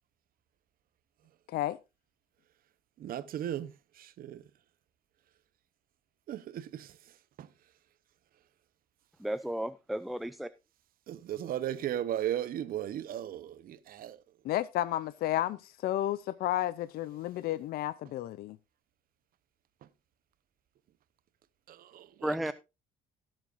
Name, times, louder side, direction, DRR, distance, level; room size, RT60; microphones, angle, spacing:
voice 1, 3.0-4.4 6.3-7.0 7.4-7.5 11.1-14.2 21.7-22.5, right 11 dB, 60° right, 0.9 m, -36 dB
voice 2, 9.2-10.5 22.2-22.5, right 1 dB, ahead, 0.4 m, -33 dB
voice 3, 14.4-18.6, left 13 dB, 65° left, 0.5 m, -32 dB
16.5 x 7.5 x 2.5 m
cardioid pair, 110°, 17 cm